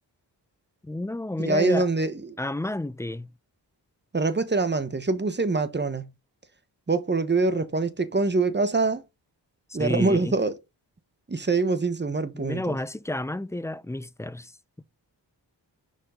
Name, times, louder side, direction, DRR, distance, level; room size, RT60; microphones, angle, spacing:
voice 1, 0.8-1.9 2.4-3.3 9.7-10.3 12.3-14.5 14.8-14.9, left 1 dB, 5° left, 0.4 m, -31 dB
voice 2, 1.4-2.4 4.1-6.1 6.9-9.0 9.7-10.5 11.3-12.7, right 3 dB, 25° right, 1.1 m, -24 dB
6.2 x 5.1 x 3.8 m
cardioid pair, 55°, 42 cm